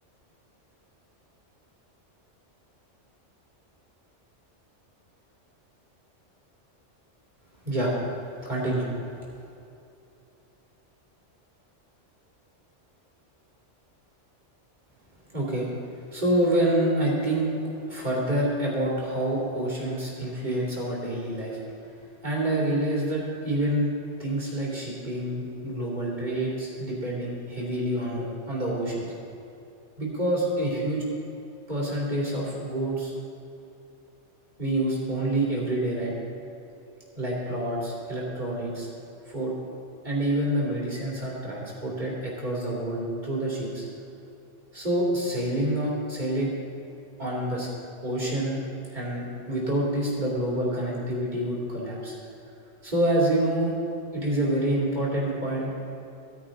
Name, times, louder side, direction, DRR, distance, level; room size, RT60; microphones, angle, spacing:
voice 1, 7.6-8.0 8.4-9.0 15.3-15.7 16.1-17.5 17.9-21.6 22.2-23.9 24.2-29.1 30.0-31.0 31.7-33.1 34.6-36.1 37.1-38.9 39.3-39.5 40.0-43.9 44.7-46.5 47.2-47.7 48.0-48.6 48.9-52.1 52.8-53.7 54.1-55.8, right 1 dB, 40° right, -5 dB, 3.0 m, -27 dB
15.5 x 10.0 x 3.8 m, 2.7 s
omnidirectional pair, 1.3 m